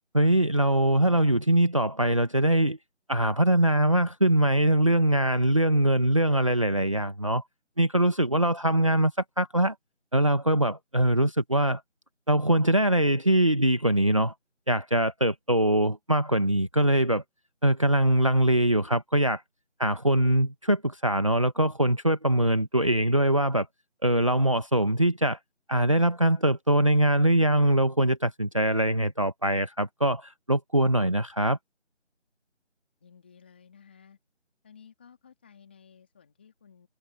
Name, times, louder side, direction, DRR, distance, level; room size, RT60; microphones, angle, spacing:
voice 1, 0.1-2.8 3.1-7.4 7.8-9.1 9.4-9.7 10.1-11.8 12.3-14.3 14.7-17.2 17.6-19.4 19.8-23.7 24.0-25.4 25.7-31.6, right 1 dB, 25° right, 1.4 m, -23 dB
voice 2, 33.0-34.2 34.6-36.9, left 7 dB, 10° left, 3.5 m, -55 dB
figure-of-eight pair, 175°, 37 cm